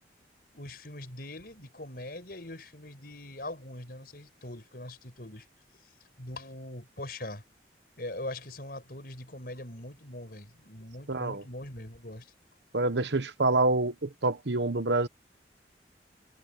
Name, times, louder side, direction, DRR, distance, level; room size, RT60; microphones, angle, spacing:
voice 1, 0.5-5.5 6.2-7.4 8.0-12.3, left 1 dB, 55° left, 5.8 m, -42 dB
voice 2, 11.1-11.4 12.7-15.1, right 2 dB, 80° right, 1.1 m, -27 dB
head